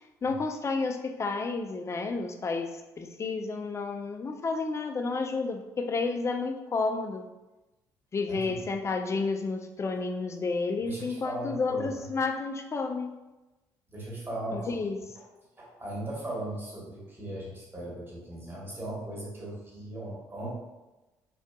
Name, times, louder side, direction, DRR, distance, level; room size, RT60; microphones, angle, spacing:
voice 1, 0.2-7.3 8.1-13.1 14.5-15.0, left 4 dB, 30° left, 5 dB, 0.4 m, -31 dB
voice 2, 8.3-8.6 10.8-12.1 13.9-14.7 15.6-20.6, right 1 dB, 25° right, -5 dB, 1.2 m, -38 dB
2.7 x 2.5 x 2.2 m, 1.1 s
hypercardioid pair, 50°, 9 cm